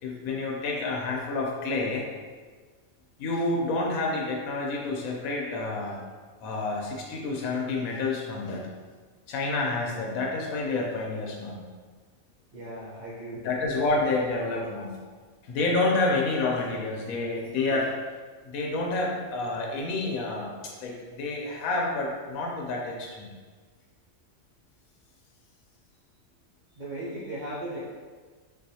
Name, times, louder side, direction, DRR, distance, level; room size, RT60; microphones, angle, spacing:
voice 1, 0.0-2.0 3.2-6.0 6.4-8.6 9.3-11.6 13.4-14.9 15.4-17.9 18.5-20.5 20.8-23.3, left 3 dB, 85° left, -1 dB, 1.1 m, -29 dB
voice 2, 12.5-13.6 13.9-14.0 26.7-27.8, right 1 dB, 55° right, -7 dB, 0.5 m, -37 dB
3.9 x 2.4 x 2.7 m, 1.5 s
omnidirectional pair, 1.5 m